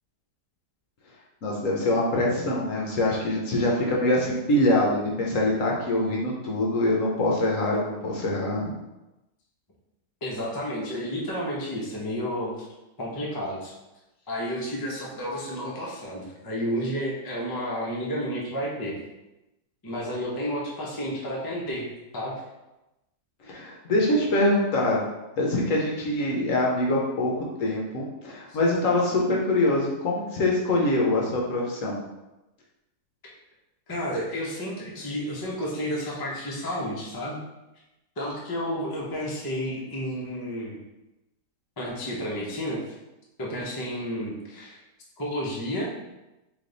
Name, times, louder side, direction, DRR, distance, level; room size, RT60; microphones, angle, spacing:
voice 1, 1.4-8.7 23.4-25.0 25.4-32.0, left 1 dB, 60° left, -2 dB, 1.0 m, -24 dB
voice 2, 10.2-12.7 13.0-13.7 14.3-19.0 19.8-21.8 22.1-22.3 33.9-37.4 38.2-40.8 41.8-43.0 43.4-44.8 45.2-45.9, equal, 35° left, -4 dB, 0.3 m, -31 dB
3.4 x 3.0 x 3.9 m, 0.99 s
omnidirectional pair, 1.8 m